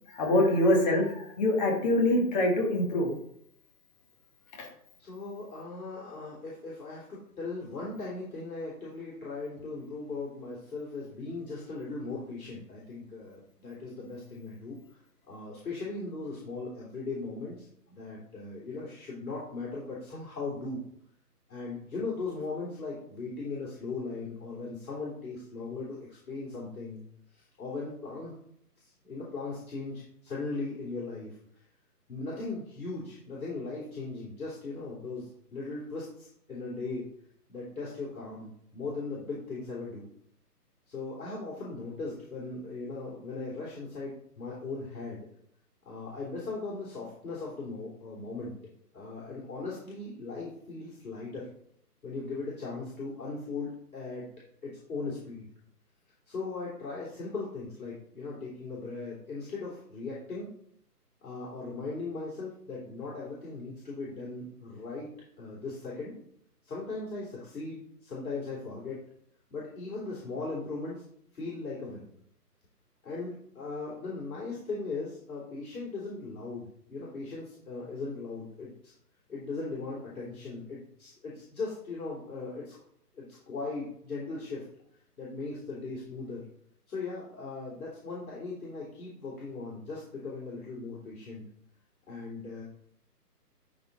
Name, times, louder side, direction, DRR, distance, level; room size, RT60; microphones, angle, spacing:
voice 1, 0.1-3.1 4.6-4.7, left 1 dB, 25° left, 0 dB, 2.0 m, -24 dB
voice 2, 5.0-15.0 15.3-20.8 21.5-27.0 27.3-28.3 28.8-31.6 32.1-37.1 37.5-40.1 40.9-45.3 45.9-48.6 48.9-51.5 52.0-54.3 54.6-55.5 56.3-60.5 61.2-66.1 66.6-69.0 69.5-71.0 71.3-72.1 73.0-78.9 79.3-82.8 83.1-84.6 85.2-86.4 86.9-91.4 92.1-92.6, left 3 dB, 60° left, -6 dB, 3.4 m, -38 dB
12.0 x 4.3 x 4.1 m, 0.68 s
figure-of-eight pair, 150°, 48 cm